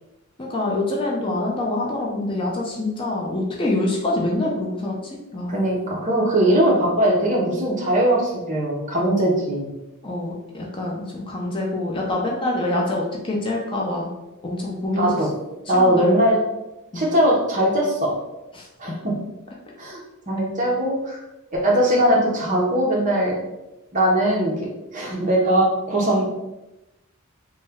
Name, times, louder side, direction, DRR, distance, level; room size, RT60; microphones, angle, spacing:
voice 1, 0.4-5.6 10.0-14.1 14.4-15.1 15.7-16.1 16.9-17.1 18.6-19.0, left 2 dB, 25° left, -2 dB, 0.5 m, -26 dB
voice 2, 5.5-9.7 14.9-15.3 15.7-16.4 16.9-18.1 18.8-19.1 19.8-21.2 21.5-23.4 23.9-26.3, right 1 dB, 35° right, -2 dB, 0.7 m, -20 dB
3.1 x 2.2 x 3.5 m, 0.97 s
head